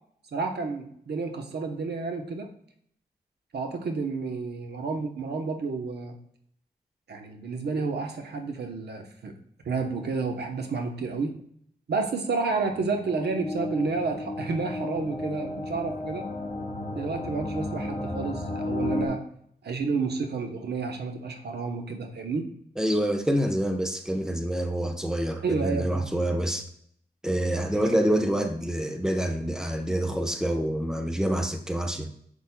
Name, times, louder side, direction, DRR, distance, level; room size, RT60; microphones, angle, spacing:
voice 1, 0.3-2.5 3.5-6.1 7.1-9.3 9.6-11.3 11.9-16.3 16.9-19.2 19.6-22.4 25.4-26.0, right 4 dB, 90° right, 5 dB, 0.9 m, -30 dB
sound 1, 12.1-19.1, left 2 dB, 50° left, 2.4 m, -33 dB
voice 2, 22.8-26.6 27.2-32.1, right 1 dB, 5° right, 5 dB, 0.9 m, -27 dB
7.0 x 6.1 x 2.2 m, 0.67 s
wide cardioid pair, 75°, 17 cm